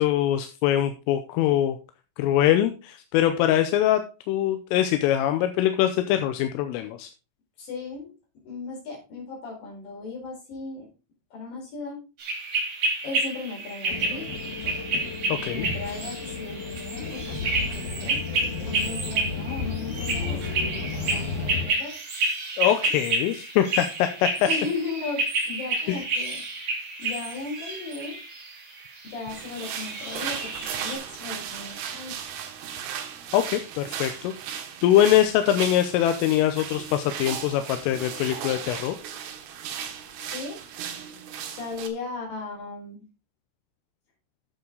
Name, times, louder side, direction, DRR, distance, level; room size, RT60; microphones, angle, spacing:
voice 1, 0.0-1.8 2.2-4.0 4.3-7.1 15.3-15.7 22.6-24.5 25.9-26.0 33.3-39.0, left 12 dB, 85° left, 7 dB, 3.3 m, -23 dB
voice 2, 7.6-8.1 8.4-10.9 11.3-12.0 13.0-14.5 15.5-20.5 20.9-22.0 24.5-26.4 27.0-28.2 29.0-32.2 39.8-40.6 41.5-43.0, left 4 dB, 45° left, -2 dB, 5.9 m, -36 dB
sound 1, 12.2-31.0, right 2 dB, 40° right, 3.5 m, -30 dB
sound 2, 13.9-21.7, left 4 dB, 70° left, 2.0 m, -33 dB
sound 3, 29.3-41.9, right 8 dB, 85° right, 4.1 m, -36 dB
11.5 x 7.2 x 3.9 m, 0.31 s
omnidirectional pair, 5.9 m